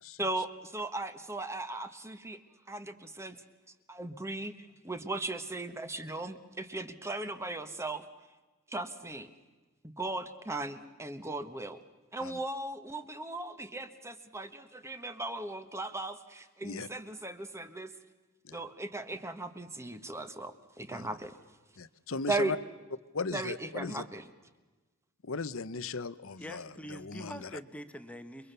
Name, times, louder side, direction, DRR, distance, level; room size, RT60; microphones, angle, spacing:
voice 1, 0.2-2.4 2.7-3.4 3.9-8.0 8.7-9.3 10.0-11.8 12.1-17.9 18.5-21.3 22.3-22.5 23.3-24.3, right 2 dB, 10° right, 10 dB, 1.3 m, -37 dB
voice 2, 21.8-22.6 23.1-24.0 25.2-27.5, left 4 dB, 65° left, 15 dB, 0.9 m, -37 dB
voice 3, 26.4-28.5, equal, 5° left, 8 dB, 1.3 m, -44 dB
29.0 x 23.0 x 6.9 m, 1.2 s
head